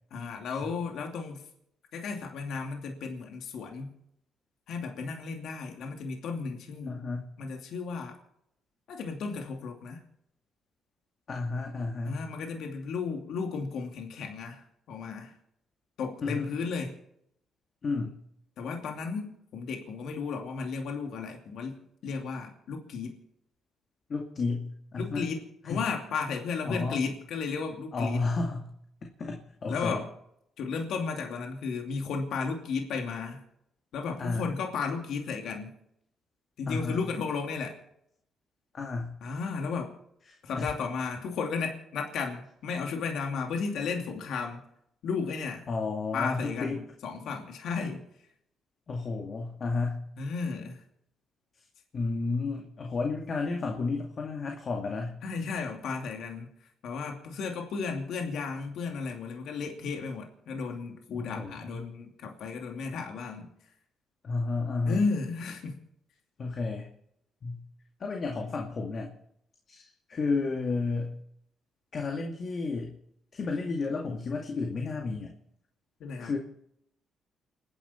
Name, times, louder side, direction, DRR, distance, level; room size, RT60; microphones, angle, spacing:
voice 1, 0.1-1.5 1.9-3.9 4.7-7.0 7.4-8.2 8.9-10.0 12.1-15.3 16.0-16.9 18.6-23.2 25.0-28.2 29.7-30.1 30.6-33.4 33.9-35.7 36.6-37.8 39.2-39.9 40.4-44.6 45.0-45.6 46.1-48.0 50.2-50.8 55.2-56.5 56.8-63.5 64.8-65.8 76.0-76.3, left 5 dB, 75° left, 2 dB, 2.6 m, -34 dB
voice 2, 6.9-7.3 11.3-12.2 16.2-16.5 17.8-18.2 24.1-25.3 25.6-25.8 26.7-27.0 27.9-28.7 29.0-30.0 34.2-34.5 36.7-37.0 38.7-39.2 40.3-40.7 45.7-46.8 48.9-50.0 51.9-55.2 61.1-61.8 64.2-65.1 66.4-66.9 67.4-67.6 68.0-69.1 69.7-71.2 71.9-73.0 73.3-75.3 76.2-76.4, left 3 dB, 45° left, 1 dB, 2.2 m, -32 dB
29.5 x 10.5 x 4.4 m, 0.75 s
cardioid pair, 90°, 0 cm